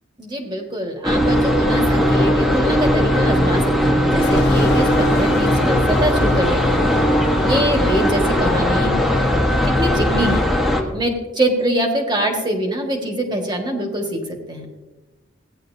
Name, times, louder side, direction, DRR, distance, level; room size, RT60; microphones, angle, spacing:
voice 1, 0.2-6.8 7.4-8.9 9.6-10.4 10.9-14.7, right 1 dB, 20° right, 2 dB, 1.7 m, -24 dB
sound 1, 1.0-10.8, equal, ahead, 1.3 m, -18 dB
sound 2, 4.2-9.6, left 2 dB, 55° left, 1.2 m, -30 dB
16.0 x 10.0 x 2.7 m, 1.1 s
head